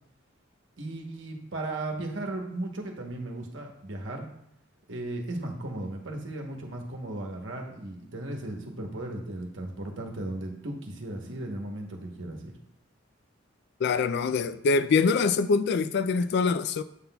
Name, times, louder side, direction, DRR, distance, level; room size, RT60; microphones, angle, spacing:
voice 1, 0.8-4.3 4.9-12.5, right 1 dB, 70° right, 1.1 m, -36 dB
voice 2, 13.8-16.8, left 4 dB, 55° left, 0.3 m, -24 dB
8.2 x 5.8 x 2.3 m
head